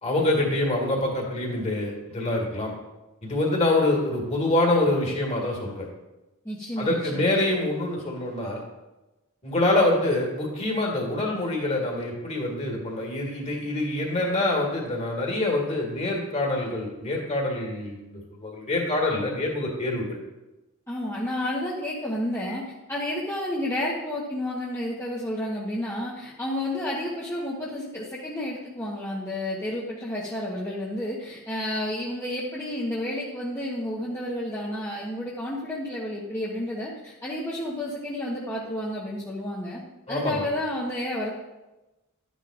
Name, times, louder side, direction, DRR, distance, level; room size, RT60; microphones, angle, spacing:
voice 1, 0.0-2.7 3.2-5.9 6.8-8.6 9.4-20.2 40.1-40.5, left 2 dB, 30° left, -1 dB, 2.1 m, -25 dB
voice 2, 6.4-7.3 20.9-22.6 22.9-39.8 40.1-41.3, left 1 dB, 10° left, -6 dB, 1.0 m, -31 dB
12.0 x 9.2 x 2.5 m, 1.1 s
head